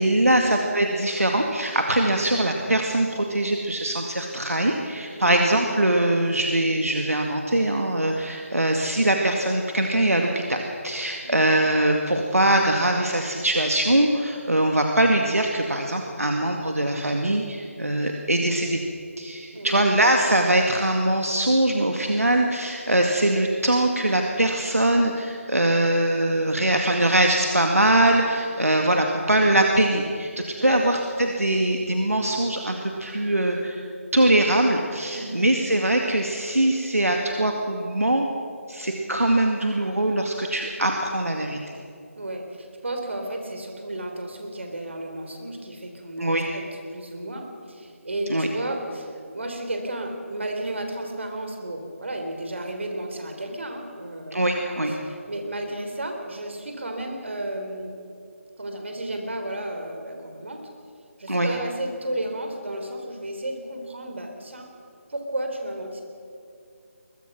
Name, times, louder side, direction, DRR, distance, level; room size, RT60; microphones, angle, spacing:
voice 1, 0.0-18.8 19.2-30.3 30.6-33.8 34.1-38.3 38.7-41.7 46.2-46.5 48.3-48.5 54.3-54.9 61.3-61.5, right 1 dB, 75° right, 2 dB, 2.1 m, -22 dB
voice 2, 35.1-35.5 42.2-46.6 46.9-57.9 58.6-60.7 61.2-64.7 65.1-66.0, right 1 dB, 55° right, 4 dB, 3.8 m, -33 dB
21.5 x 21.5 x 6.2 m, 2.4 s
figure-of-eight pair, 155°, 8 cm